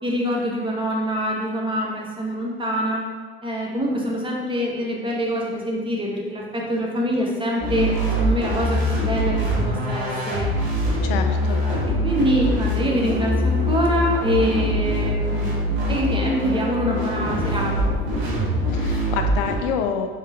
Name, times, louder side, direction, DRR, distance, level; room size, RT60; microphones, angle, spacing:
voice 1, 0.0-3.1 3.4-10.5 12.0-15.5 15.9-17.9, equal, 15° right, -2 dB, 1.0 m, -25 dB
sound 1, 7.6-19.5, equal, 75° right, 1.4 m, -23 dB
voice 2, 11.0-11.6 18.7-20.1, left 7 dB, 65° left, 6 dB, 0.5 m, -27 dB
3.7 x 3.6 x 2.9 m, 1.4 s
hypercardioid pair, 70°, 30 cm